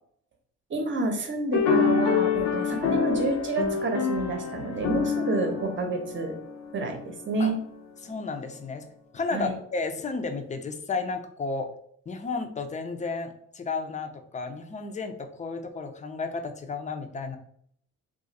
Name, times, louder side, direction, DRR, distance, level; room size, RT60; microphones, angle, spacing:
voice 1, 0.7-6.3 6.7-7.6 9.3-9.5, right 3 dB, 40° right, 4 dB, 0.8 m, -29 dB
sound 1, 1.5-7.1, left 6 dB, 65° left, 0.6 m, -26 dB
voice 2, 8.0-8.8 9.1-11.7 12.1-17.4, left 4 dB, 25° left, 7 dB, 0.5 m, -32 dB
2.5 x 2.4 x 4.0 m, 0.66 s
cardioid pair, 90°, 30 cm